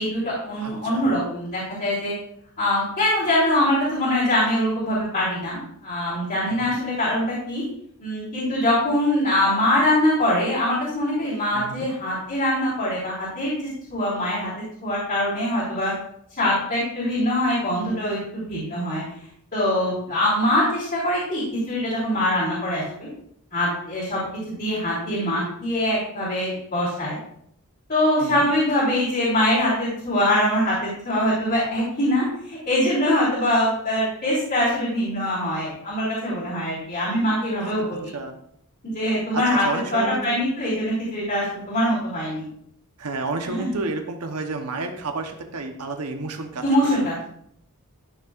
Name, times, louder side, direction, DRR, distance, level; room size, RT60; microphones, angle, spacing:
voice 1, 0.0-2.1 2.6-7.6 8.0-13.5 13.9-14.5 14.8-15.9 16.4-19.0 19.5-23.1 23.5-24.2 24.5-27.2 27.9-38.1 38.8-39.6 39.9-42.4 43.4-43.8 46.6-47.2, left 1 dB, 45° left, -10 dB, 3.4 m, -23 dB
voice 2, 0.6-1.1 6.5-6.8 11.5-11.9 19.9-20.2 28.2-28.5 37.6-38.4 39.3-40.4 43.0-47.0, right 3 dB, 85° right, 5 dB, 1.0 m, -31 dB
12.0 x 6.7 x 2.5 m, 0.70 s
head